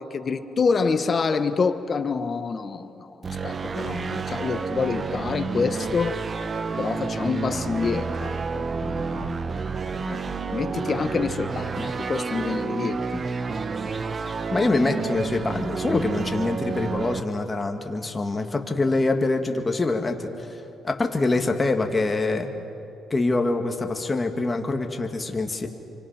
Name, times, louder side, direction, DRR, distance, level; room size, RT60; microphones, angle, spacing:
voice 1, 0.0-3.1 3.4-6.2 6.8-9.4 10.0-10.2 10.5-13.2, left 5 dB, 40° left, 9 dB, 1.3 m, -27 dB
sound 1, 3.2-17.2, right 4 dB, 40° right, 0.9 m, -30 dB
voice 2, 14.5-20.6 20.8-22.5 23.1-25.7, left 2 dB, 25° left, 4 dB, 2.2 m, -25 dB
28.5 x 25.0 x 6.0 m, 2.9 s
cardioid pair, 90°, 0 cm